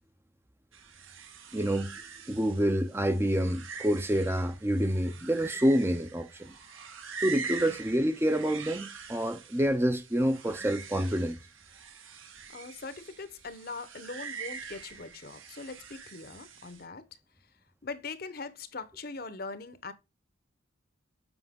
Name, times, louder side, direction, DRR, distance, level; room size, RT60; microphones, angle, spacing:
sound 1, 0.7-16.8, right 5 dB, 80° right, 1.5 m, -44 dB
voice 1, 1.5-2.0 2.3-6.5 7.2-11.4, equal, 10° right, 0.5 m, -27 dB
voice 2, 12.5-17.0 17.8-19.9, left 3 dB, 45° left, 0.8 m, -41 dB
8.0 x 5.4 x 3.6 m
head